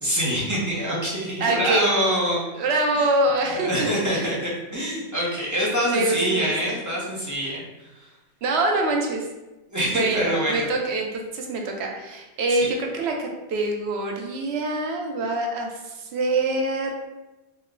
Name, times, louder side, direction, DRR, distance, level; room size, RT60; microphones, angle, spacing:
voice 1, 0.0-2.5 3.4-7.6 9.7-10.7 12.5-12.7, equal, 20° right, -6 dB, 0.6 m, -25 dB
voice 2, 1.4-1.9 2.5-4.3 5.8-6.8 8.4-9.3 9.9-16.9, right 2 dB, 70° right, 1 dB, 0.8 m, -25 dB
3.0 x 2.1 x 3.6 m, 1.0 s
omnidirectional pair, 1.2 m